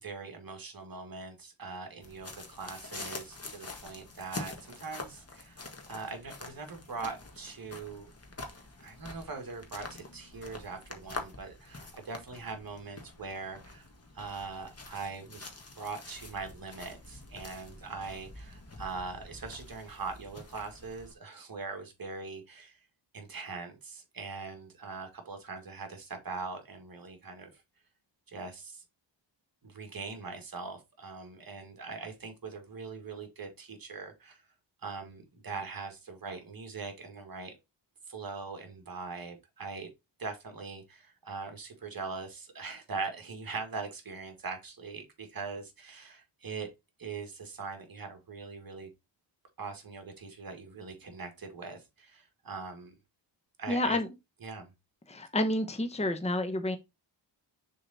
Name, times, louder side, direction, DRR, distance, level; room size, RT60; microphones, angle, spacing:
voice 1, 0.0-8.1 8.8-13.9 14.1-15.5 15.8-22.8 23.1-27.5 28.3-28.8 29.6-34.4 34.8-37.5 38.1-39.9 40.2-46.7 47.0-48.9 49.6-52.9 53.6-54.0 54.4-54.7, right 4 dB, 50° right, 2.0 m, -41 dB
sound 1, 2.0-21.1, left 3 dB, 30° left, 1.6 m, -46 dB
voice 2, 53.7-54.1 55.1-56.8, left 1 dB, 15° left, 1.0 m, -29 dB
6.7 x 3.8 x 4.2 m
wide cardioid pair, 95°, 46 cm